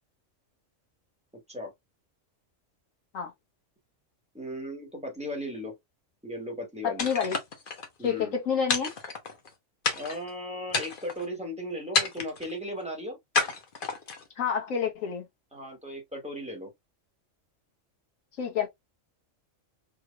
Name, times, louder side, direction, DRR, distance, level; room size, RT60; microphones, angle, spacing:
voice 1, 4.3-5.7 6.2-7.1 8.0-8.4 9.9-13.2 15.5-16.7, equal, 5° right, 1.4 m, -36 dB
voice 2, 6.8-7.4 8.0-8.9 14.4-15.3 18.4-18.7, left 7 dB, 85° left, 1.5 m, -28 dB
sound 1, 7.0-7.9 8.7-9.5 9.8-10.3 10.7-11.3 11.9-12.5 13.3-14.3, left 4 dB, 45° left, 1.0 m, -29 dB
3.5 x 3.1 x 2.4 m
omnidirectional pair, 1.3 m